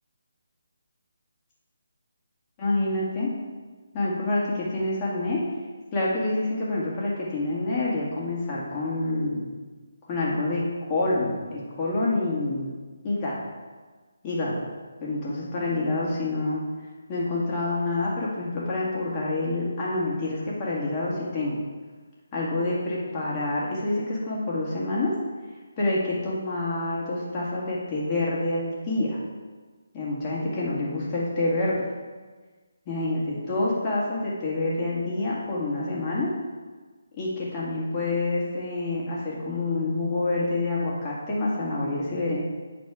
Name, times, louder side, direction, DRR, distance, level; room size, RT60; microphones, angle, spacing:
voice 1, 2.6-3.3 3.9-5.4 5.9-9.4 10.1-10.6 10.9-12.7 13.0-13.4 14.2-14.6 15.0-16.6 17.1-21.5 22.3-25.1 25.8-29.2 29.9-31.8 32.9-36.3 37.2-42.4, left 2 dB, 25° left, -6 dB, 1.9 m, -27 dB
8.8 x 4.3 x 4.8 m, 1.4 s
figure-of-eight pair, 150°, 0 cm